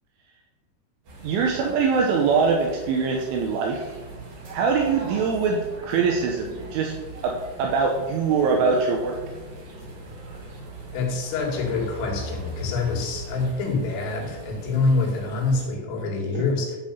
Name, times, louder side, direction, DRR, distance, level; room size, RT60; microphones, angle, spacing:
sound 1, 1.0-15.6, right 1 dB, 50° right, 4.5 m, -40 dB
voice 1, 1.2-3.8 4.5-6.9 7.2-9.2, right 5 dB, 75° right, 1 dB, 3.2 m, -23 dB
voice 2, 10.9-16.8, left 3 dB, 75° left, 0 dB, 4.8 m, -26 dB
13.0 x 5.5 x 7.0 m, 1.3 s
omnidirectional pair, 5.9 m